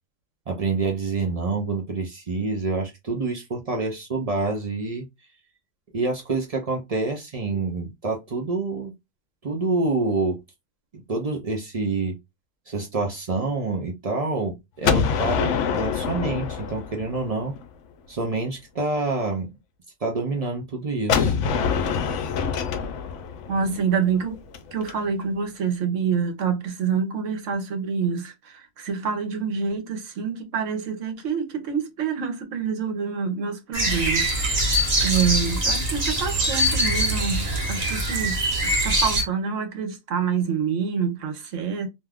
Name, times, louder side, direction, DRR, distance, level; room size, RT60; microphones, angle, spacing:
voice 1, 0.5-5.1 5.9-8.9 9.4-10.4 10.9-12.2 12.7-17.5 18.1-19.5 20.0-21.4, right 3 dB, 55° right, 0.4 m, -27 dB
Gunshot gunfire, 14.8-17.7 21.1-24.9, left 6 dB, 70° left, 0.9 m, -25 dB
voice 2, 23.5-24.4 24.7-41.9, right 6 dB, 70° right, 1.1 m, -27 dB
sound 1, 33.7-39.2, right 1 dB, 35° right, 0.9 m, -23 dB
2.6 x 2.3 x 3.3 m
omnidirectional pair, 1.3 m